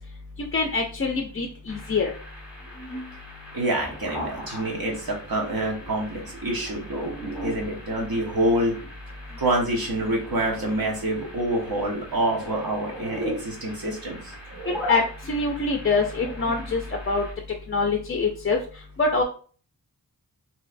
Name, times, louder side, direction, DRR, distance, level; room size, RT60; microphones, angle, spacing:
voice 1, 0.5-2.1 14.9-15.0 15.3-16.8 17.1-17.2 17.7-18.6 19.0-19.2, left 4 dB, 35° left, 3 dB, 0.4 m, -24 dB
sound 1, 1.7-17.3, equal, 5° right, 1.3 m, -38 dB
voice 2, 3.5-8.8 9.4-14.3, right 1 dB, 60° right, -1 dB, 1.0 m, -27 dB
2.9 x 2.7 x 2.5 m, 0.41 s
wide cardioid pair, 85°, 41 cm